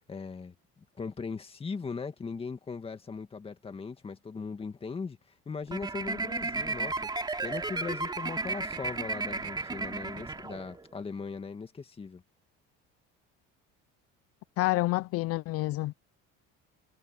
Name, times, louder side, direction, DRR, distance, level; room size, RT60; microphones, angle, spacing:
voice 1, 0.1-5.2 5.5-7.0 7.4-12.2, left 5 dB, 20° left, 2.1 m, -39 dB
sound 1, 5.7-10.9, right 3 dB, 15° right, 3.4 m, -34 dB
voice 2, 14.6-15.9, left 19 dB, 50° left, 0.5 m, -28 dB
cardioid pair, 155°, 30 cm